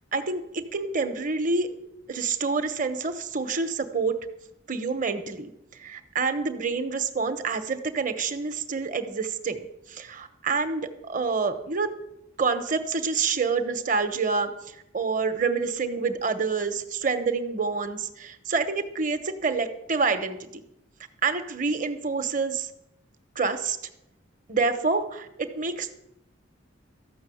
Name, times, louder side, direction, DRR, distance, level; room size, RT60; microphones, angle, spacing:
voice 1, 0.1-1.7 2.1-4.2 4.7-5.5 5.8-11.9 12.4-20.6 21.2-22.7 23.4-23.8 24.5-25.9, right 4 dB, 45° right, 9 dB, 1.0 m, -27 dB
13.5 x 6.1 x 8.5 m, 0.83 s
head